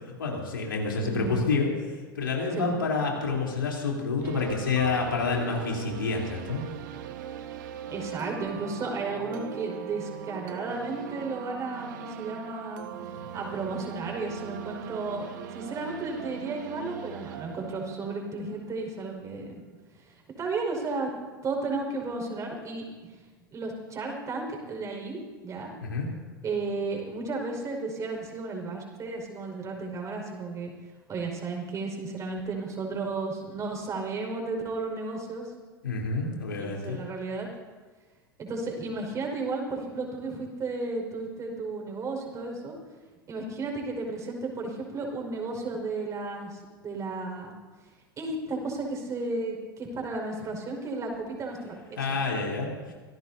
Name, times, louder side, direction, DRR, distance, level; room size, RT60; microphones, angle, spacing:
voice 1, 0.2-1.7 2.2-6.6 25.8-26.1 35.8-37.0 52.0-52.9, left 4 dB, 70° left, -2 dB, 3.9 m, -28 dB
voice 2, 1.0-1.5 2.5-2.8 7.9-12.9 13.3-15.3 15.5-19.6 20.0-21.1 21.4-23.1 23.5-25.7 26.4-30.7 31.1-35.5 36.6-37.5 38.4-42.8 43.3-47.6 48.2-52.2, right 3 dB, 25° right, 1 dB, 5.5 m, -33 dB
sound 1, 4.2-19.1, right 9 dB, 55° right, 1.5 m, -40 dB
25.5 x 18.5 x 2.9 m, 1.4 s
figure-of-eight pair, 85°, 12 cm